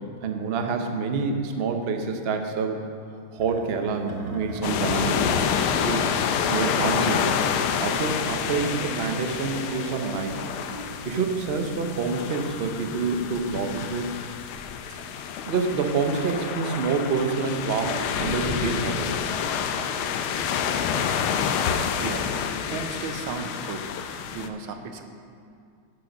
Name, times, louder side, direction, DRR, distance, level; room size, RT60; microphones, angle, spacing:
voice 1, 0.2-2.9 3.3-7.4 7.8-10.4 11.0-14.1 15.4-19.2, right 4 dB, 65° right, 5 dB, 0.6 m, -27 dB
sound 1, 3.4-17.0 17.3-21.6, equal, 25° right, 0.8 m, -42 dB
sound 2, 4.6-24.5, left 7 dB, 85° left, 1.5 m, -28 dB
sound 3, 9.2-13.1, left 2 dB, 50° left, 1.3 m, -45 dB
voice 2, 21.6-23.9 24.3-25.0, right 5 dB, 85° right, 6 dB, 1.7 m, -35 dB
10.5 x 7.9 x 5.9 m, 2.3 s
omnidirectional pair, 2.3 m